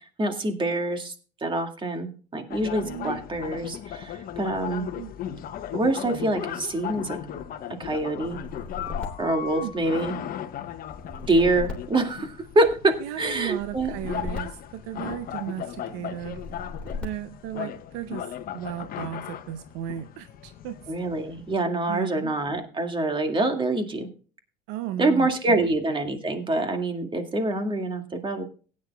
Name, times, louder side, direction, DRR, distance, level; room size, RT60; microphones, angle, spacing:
voice 1, 0.2-1.1 1.4-4.9 5.7-7.2 7.8-8.4 9.2-10.2 11.3-13.9 20.9-24.1 25.0-28.4, right 2 dB, 25° right, 5 dB, 2.1 m, -25 dB
sound 1, 2.5-21.5, left 10 dB, 45° left, 0.9 m, -37 dB
voice 2, 2.8-3.2 5.0-5.1 9.5-9.7 13.0-16.4 17.0-18.3 18.5-20.7 21.9-22.3 24.7-25.7, right 12 dB, 70° right, 11 dB, 0.7 m, -35 dB
sound 2, 8.2-10.2 10.9-12.8 13.5-15.4 16.2-17.5, left 4 dB, 5° left, 3.4 m, -38 dB
18.0 x 9.6 x 2.3 m, 0.38 s
hypercardioid pair, 80°, 21 cm